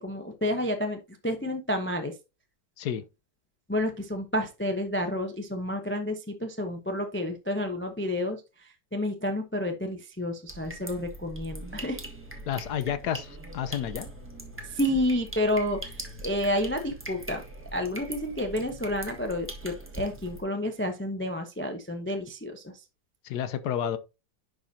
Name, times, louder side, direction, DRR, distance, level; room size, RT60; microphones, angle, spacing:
voice 1, 0.0-2.1 3.7-12.0 14.6-17.4 17.7-22.8, left 1 dB, 10° left, 0.5 m, -30 dB
sound 1, 10.5-20.4, right 1 dB, 5° right, 1.4 m, -41 dB
voice 2, 12.5-14.1 23.2-24.0, left 9 dB, 65° left, 1.3 m, -30 dB
10.5 x 5.1 x 2.8 m
omnidirectional pair, 2.0 m